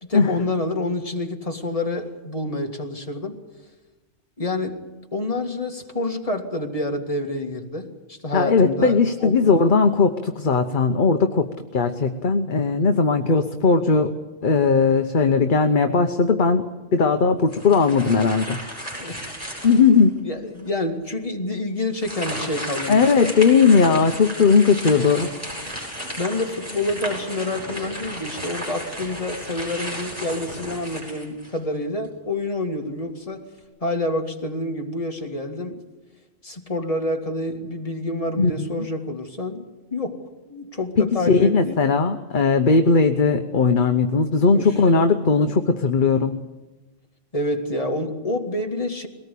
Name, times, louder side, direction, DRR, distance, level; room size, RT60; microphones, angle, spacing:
voice 1, 0.0-3.3 4.4-9.4 19.0-19.4 20.2-23.3 23.6-23.7 26.2-33.5 33.8-35.8 36.4-39.6 39.9-40.2 40.5-41.8 44.5-44.8 47.3-49.1, left 2 dB, 30° left, 3 dB, 2.2 m, -28 dB
voice 2, 8.3-14.1 14.4-16.6 16.9-18.7 19.6-20.2 22.9-25.3 38.4-38.9 41.0-46.4, left 4 dB, 45° left, 6 dB, 1.1 m, -18 dB
sound 1, 17.5-20.0 20.6-20.7 21.9-31.7, equal, 15° right, 8.1 m, -34 dB
22.0 x 18.5 x 8.5 m, 1.1 s
omnidirectional pair, 1.2 m